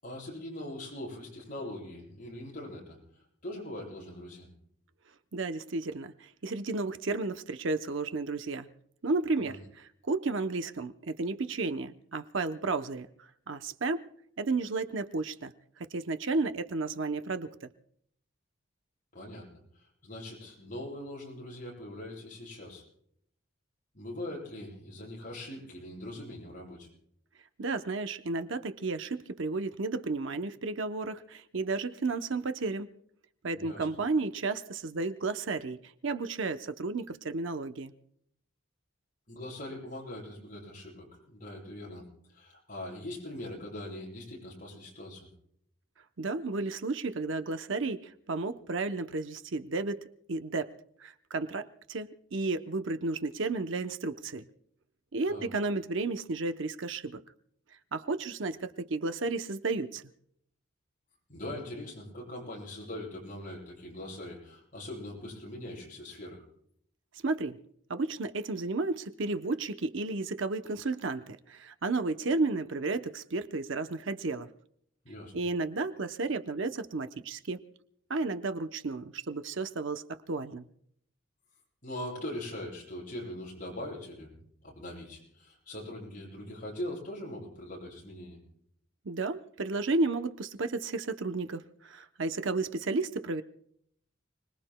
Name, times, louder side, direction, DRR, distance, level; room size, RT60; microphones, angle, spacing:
voice 1, 0.0-3.0 3.4-4.5 9.4-9.6 19.1-19.5 19.7-22.8 23.9-26.9 33.5-33.9 39.3-42.0 42.3-45.3 55.3-55.5 61.3-66.4 75.0-75.3 81.8-84.3 84.6-88.4, left 1 dB, 40° left, -4 dB, 8.0 m, -41 dB
voice 2, 5.3-8.7 9.0-14.0 14.4-17.7 27.6-32.9 33.4-37.9 46.2-50.7 51.0-54.4 55.1-57.2 57.9-60.0 67.2-67.6 67.9-74.5 75.3-77.6 78.1-80.7 89.0-93.4, right 3 dB, 65° right, 9 dB, 0.7 m, -33 dB
30.0 x 20.5 x 2.2 m, 0.69 s
head